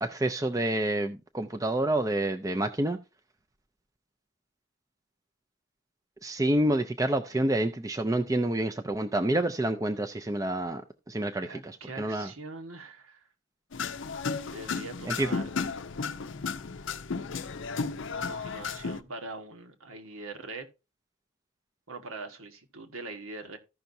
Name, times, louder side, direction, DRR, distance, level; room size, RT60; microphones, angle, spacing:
voice 1, 0.0-3.0 6.2-10.8 11.1-12.3 15.1-15.3, right 1 dB, 15° right, 0.4 m, -28 dB
voice 2, 11.4-13.2 14.5-15.5 18.3-20.7 21.9-23.6, right 2 dB, 80° right, 1.4 m, -42 dB
sound 1, 13.7-19.0, left 5 dB, 60° left, 0.6 m, -34 dB
15.0 x 5.8 x 2.6 m
head